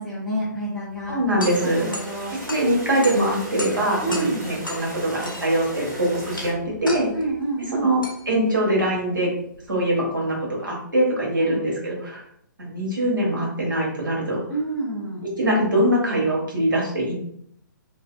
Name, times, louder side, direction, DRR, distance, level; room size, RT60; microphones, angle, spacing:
voice 1, 0.0-1.2 1.6-2.3 4.0-4.5 7.1-7.9 11.4-11.6 14.5-15.3, right 2 dB, ahead, -9 dB, 0.6 m, -28 dB
sound 1, 0.9-10.1, left 2 dB, 80° left, 0.5 m, -37 dB
voice 2, 1.1-1.9 2.3-7.1 7.7-9.3 9.7-12.2 12.6-14.4 15.4-17.1, right 1 dB, 75° right, -3 dB, 1.1 m, -23 dB
sound 2, 1.5-6.5, right 1 dB, 30° right, 1.5 m, -37 dB
2.6 x 2.1 x 2.3 m, 0.69 s
figure-of-eight pair, 130°, 11 cm